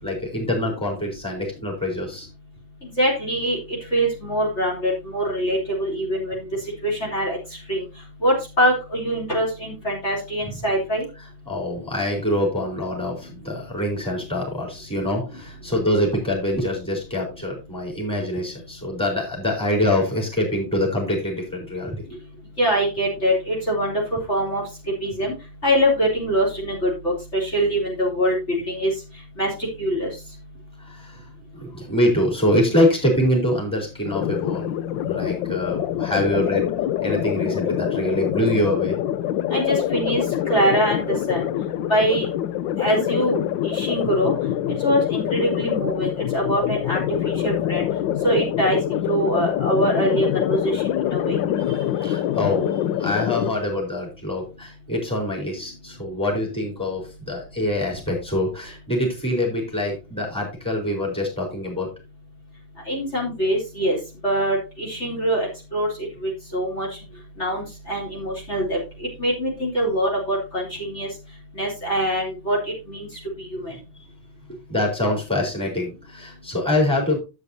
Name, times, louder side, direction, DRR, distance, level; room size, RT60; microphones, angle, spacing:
voice 1, 0.0-2.3 11.5-22.0 30.8-34.7 35.0-39.0 51.6-61.9 73.7-73.8 74.7-77.2, left 1 dB, 5° left, 0 dB, 4.1 m, -25 dB
voice 2, 2.8-3.6 3.9-6.4 6.8-7.4 7.7-7.8 8.2-11.0 22.6-23.9 24.3-24.6 25.0-25.3 25.6-28.9 29.4-29.5 29.8-30.1 39.5-40.2 40.5-41.4 41.9-42.3 42.8-43.4 43.6-44.3 44.8-47.8 48.2-51.4 62.9-64.0 64.2-65.9 66.2-66.9 67.4-68.8 69.2-71.1 71.6-72.6 72.9-73.1 73.6-73.7, right 1 dB, 35° left, -5 dB, 3.8 m, -23 dB
sound 1, 34.0-53.5, left 11 dB, 75° left, 1.3 m, -25 dB
12.0 x 8.2 x 2.8 m, 0.29 s
omnidirectional pair, 2.1 m